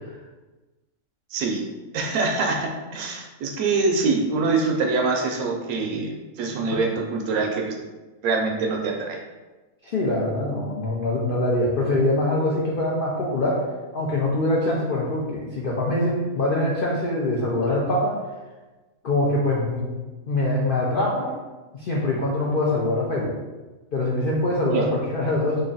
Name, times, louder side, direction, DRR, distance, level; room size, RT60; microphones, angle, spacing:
voice 1, 1.3-1.6 1.9-7.8 8.2-9.2 24.7-24.8, right 3 dB, 75° right, 2 dB, 1.0 m, -24 dB
voice 2, 9.8-13.6 13.9-18.2 19.0-19.9 20.3-21.3 21.7-23.3 23.9-25.6, left 1 dB, 70° left, -4 dB, 0.5 m, -23 dB
3.1 x 2.6 x 3.9 m, 1.2 s
omnidirectional pair, 1.6 m